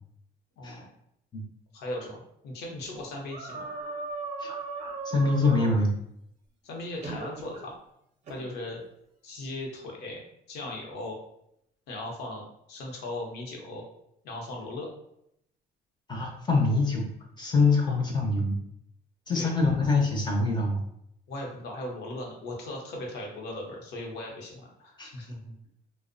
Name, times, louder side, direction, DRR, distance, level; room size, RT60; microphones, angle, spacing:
voice 1, 0.6-0.9 1.7-3.7 6.6-7.8 8.3-8.8 9.2-11.2 11.9-13.8 14.2-14.9 17.9-18.0 19.3-19.5 21.3-25.5, left 1 dB, 80° left, 0 dB, 0.7 m, -38 dB
sound 1, 3.3-5.9 7.0-7.6 8.3-8.5, right 3 dB, 45° right, 0.5 m, -37 dB
voice 2, 5.0-5.9 16.1-17.1 17.4-18.6 19.3-20.8 25.0-25.1, left 3 dB, 25° left, 0 dB, 0.5 m, -24 dB
2.5 x 2.0 x 2.5 m, 0.75 s
cardioid pair, 110°, 17 cm